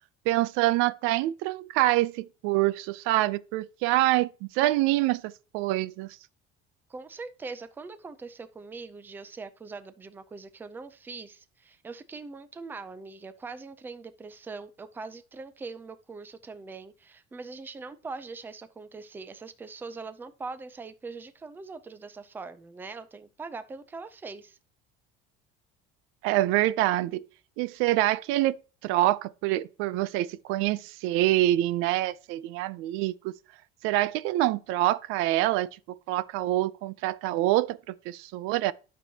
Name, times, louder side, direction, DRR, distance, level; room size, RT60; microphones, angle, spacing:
voice 1, 0.3-6.2 26.2-27.3 27.6-28.6 28.8-33.4 33.8-38.7, right 16 dB, 75° right, 0.5 m, -26 dB
voice 2, 6.9-24.6, right 4 dB, 10° right, 0.4 m, -42 dB
12.0 x 6.2 x 2.8 m
cardioid pair, 170°, 21 cm